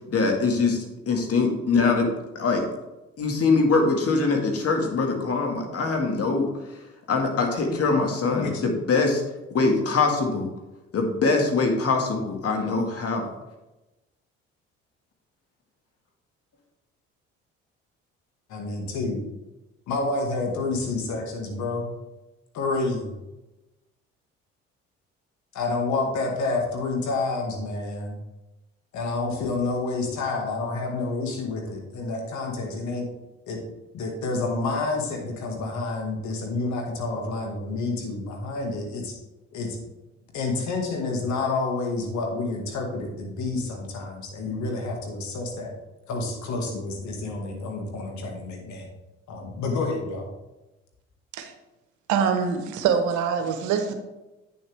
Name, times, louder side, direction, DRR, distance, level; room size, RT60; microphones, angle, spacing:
voice 1, 0.1-2.7 3.2-9.2 9.5-10.5 10.9-13.3, left 4 dB, 50° left, 3 dB, 1.9 m, -23 dB
voice 2, 8.3-8.6 18.5-19.2 19.9-21.9 22.5-23.1 25.5-28.2 28.9-33.1 33.5-33.6 33.9-39.2 39.5-39.8 40.3-45.7 46.1-48.9 49.3-50.3, left 3 dB, 65° left, 2 dB, 2.0 m, -29 dB
voice 3, 52.1-53.9, right 6 dB, 70° right, 7 dB, 1.1 m, -24 dB
8.5 x 7.1 x 3.5 m, 1.0 s
hypercardioid pair, 60°, 31 cm